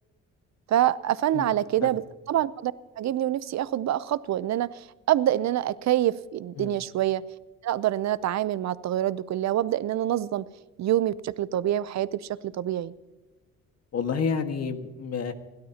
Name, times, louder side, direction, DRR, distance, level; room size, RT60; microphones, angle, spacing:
voice 1, 0.7-2.0 2.3-7.2 7.6-10.5 10.8-12.9, right 12 dB, 65° right, 17 dB, 0.7 m, -26 dB
voice 2, 13.9-15.3, left 6 dB, 55° left, 7 dB, 1.6 m, -29 dB
28.0 x 12.5 x 2.9 m, 1.2 s
cardioid pair, 90°, 30 cm